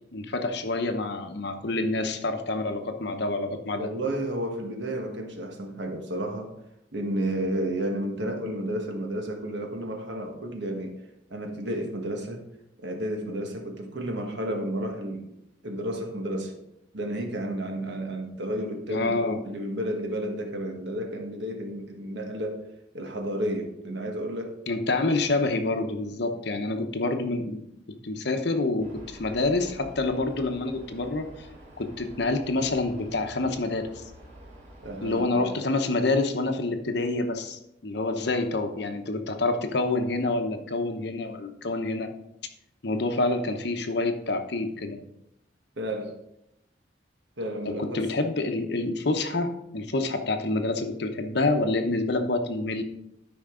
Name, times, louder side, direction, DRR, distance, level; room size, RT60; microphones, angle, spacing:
voice 1, 0.1-3.9 18.9-19.4 24.7-27.6 28.0-31.5 31.8-34.0 35.0-42.1 42.8-45.0 47.6-52.8, left 2 dB, 60° left, 6 dB, 0.9 m, -27 dB
voice 2, 3.8-6.5 6.9-10.9 11.3-12.4 12.8-15.3 15.6-16.5 16.9-22.6 22.9-24.6 34.8-35.5 45.8-46.1 47.4-48.0, right 1 dB, 65° right, 3 dB, 1.4 m, -32 dB
sound 1, 28.8-35.2, equal, 40° right, 2.8 m, -48 dB
12.5 x 5.2 x 3.8 m, 0.84 s
head